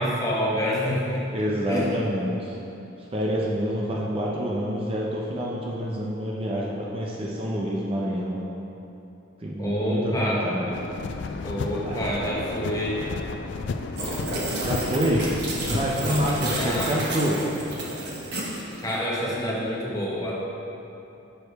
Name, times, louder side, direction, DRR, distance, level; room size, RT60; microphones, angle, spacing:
voice 1, 0.0-1.2 1.7-1.9 9.6-10.5 11.4-13.0 16.5-17.0 18.8-20.4, equal, 15° left, -5 dB, 0.9 m, -27 dB
voice 2, 1.3-2.6 3.1-8.4 9.4-10.8 11.8-12.0 14.6-15.3 15.7-17.4, equal, 25° right, -4 dB, 0.6 m, -27 dB
sound 1, 10.7-17.1, left 4 dB, 55° left, 0.3 m, -33 dB
sound 2, 14.0-19.0, right 2 dB, 50° right, 1.1 m, -31 dB
6.5 x 5.1 x 4.7 m, 2.9 s
head